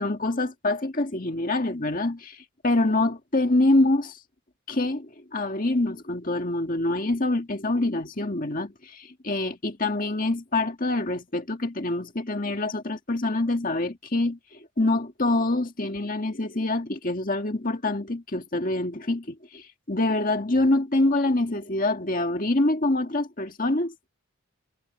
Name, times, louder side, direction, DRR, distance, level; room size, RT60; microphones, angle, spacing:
voice 1, 0.0-4.2 4.7-24.1, left 2 dB, 40° left, 1.9 m, -25 dB
head